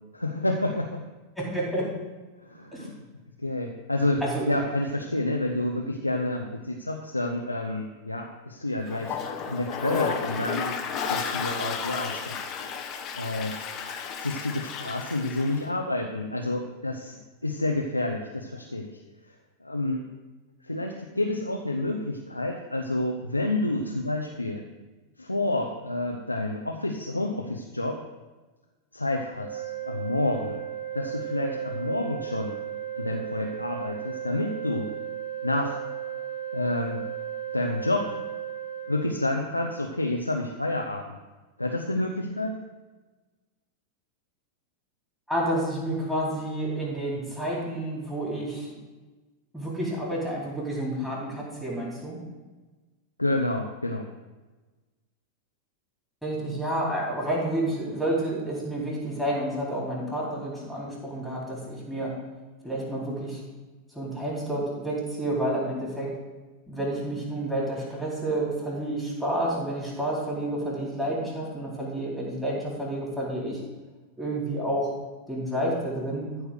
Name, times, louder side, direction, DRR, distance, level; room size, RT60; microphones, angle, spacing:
voice 1, 0.1-1.0 2.4-3.0 3.4-4.2 4.5-9.2 9.5-12.5 13.1-13.7 14.2-19.0 19.6-20.0 20.6-24.6 25.2-28.0 28.9-30.6 30.9-32.5 32.9-34.9 35.4-35.8 36.5-37.0 37.5-38.1 38.9-41.2 41.6-42.6 53.2-54.0, left 2 dB, 85° left, 2 dB, 0.7 m, -29 dB
voice 2, 1.4-1.9 2.7-2.9 4.2-4.5 45.3-48.7 49.5-52.2 56.2-62.1 62.6-63.4 63.9-66.1 66.7-73.6 74.2-74.9 75.3-76.3, right 1 dB, ahead, -5 dB, 4.2 m, -30 dB
Toilet flush, 8.9-15.6, left 6 dB, 35° left, 1.1 m, -33 dB
sound 1, 29.4-39.1, right 10 dB, 60° right, 2.6 m, -35 dB
14.0 x 4.8 x 6.5 m, 1.2 s
figure-of-eight pair, 90°, 0 cm